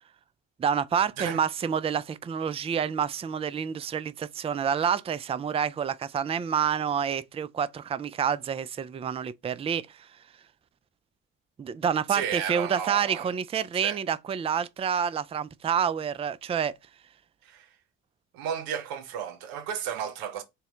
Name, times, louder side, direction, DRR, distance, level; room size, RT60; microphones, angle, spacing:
voice 1, 0.6-10.1 11.6-16.7, right 7 dB, 20° right, 0.3 m, -28 dB
voice 2, 12.1-13.3 13.8-14.0 17.4-17.7 18.3-20.4, right 8 dB, 80° right, 0.8 m, -33 dB
4.1 x 2.1 x 3.7 m
hypercardioid pair, 55°, 35 cm